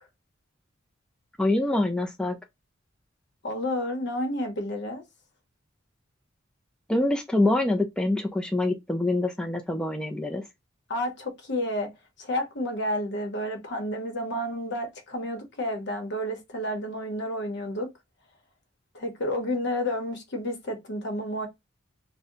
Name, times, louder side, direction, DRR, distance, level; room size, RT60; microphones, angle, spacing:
voice 1, 1.4-2.4 6.9-10.4, left 2 dB, 5° left, 0.4 m, -25 dB
voice 2, 3.4-5.0 10.9-11.9 12.2-17.9 18.9-21.5, left 1 dB, 60° left, 0.9 m, -30 dB
2.7 x 2.1 x 3.7 m
head